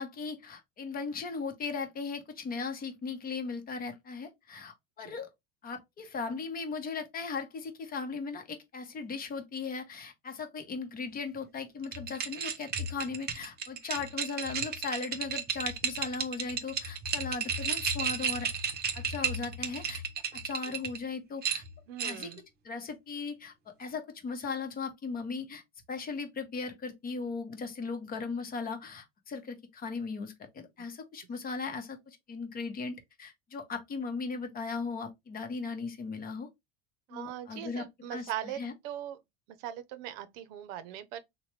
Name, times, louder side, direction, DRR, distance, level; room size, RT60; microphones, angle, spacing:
voice 1, 0.0-5.3 5.6-18.5 18.9-20.0 20.4-21.6 22.0-22.3 22.6-25.6 25.9-36.5 37.1-37.9 38.1-38.7, left 4 dB, 30° left, 0.9 m, -37 dB
sound 1, 11.8-21.0 21.4-22.4, right 6 dB, 30° right, 0.7 m, -33 dB
voice 2, 21.9-22.4 37.1-39.2 39.6-41.2, right 11 dB, 70° right, 0.6 m, -40 dB
3.1 x 2.2 x 3.1 m
supercardioid pair, 125°, 30 cm